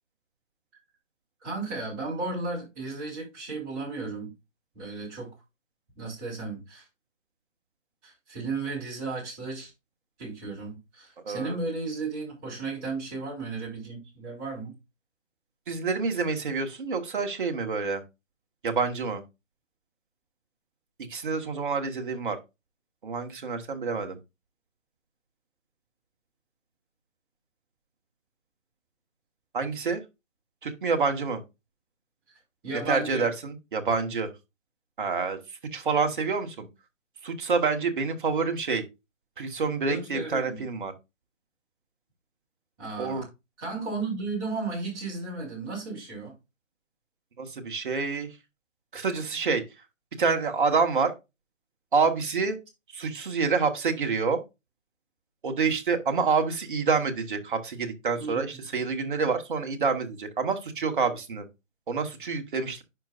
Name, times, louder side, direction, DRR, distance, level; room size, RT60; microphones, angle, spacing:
voice 1, 1.4-4.3 4.7-5.3 5.9-6.8 8.0-9.7 10.2-14.7 32.6-33.3 39.9-40.6 42.8-43.3 43.6-46.3 58.2-58.6, right 3 dB, 15° right, 3.2 m, -34 dB
voice 2, 11.2-11.6 15.7-18.0 18.6-19.2 21.1-22.4 23.0-24.2 29.5-30.0 30.6-31.4 32.9-34.3 35.0-35.4 35.7-36.7 37.2-38.8 39.4-40.9 43.0-43.2 47.4-48.3 48.9-49.6 50.2-51.1 51.9-52.6 52.9-54.4 55.4-61.5 61.9-62.8, right 4 dB, 40° right, 1.3 m, -27 dB
10.5 x 5.2 x 2.4 m
figure-of-eight pair, 155°, 39 cm